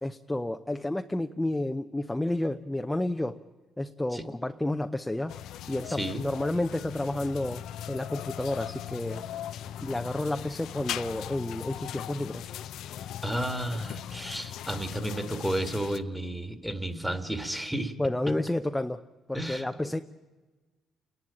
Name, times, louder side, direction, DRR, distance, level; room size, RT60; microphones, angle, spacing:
voice 1, 0.0-3.4 3.8-5.4 5.7-7.6 7.9-9.2 9.8-12.5 18.0-19.0 19.3-20.0, left 1 dB, 10° left, 6 dB, 0.7 m, -30 dB
sound 1, 5.3-16.0, left 11 dB, 75° left, 0.6 m, -39 dB
voice 2, 5.9-6.3 13.2-17.9 19.3-19.9, right 1 dB, 5° right, 7 dB, 2.0 m, -32 dB
29.5 x 11.0 x 8.6 m, 1.2 s
cardioid pair, 75°, 0 cm